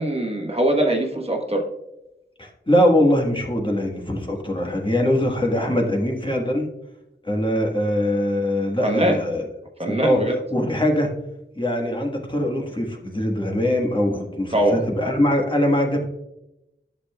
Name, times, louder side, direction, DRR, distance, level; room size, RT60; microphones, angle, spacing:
voice 1, 0.0-1.6 8.8-9.2 9.8-10.3 14.5-14.8, right 1 dB, 30° right, 1 dB, 1.1 m, -21 dB
voice 2, 2.4-6.6 7.2-9.5 9.9-10.2 10.5-11.1 11.6-16.1, left 1 dB, 25° left, 0 dB, 1.4 m, -22 dB
11.0 x 6.6 x 2.3 m, 0.89 s
wide cardioid pair, 55°, 19 cm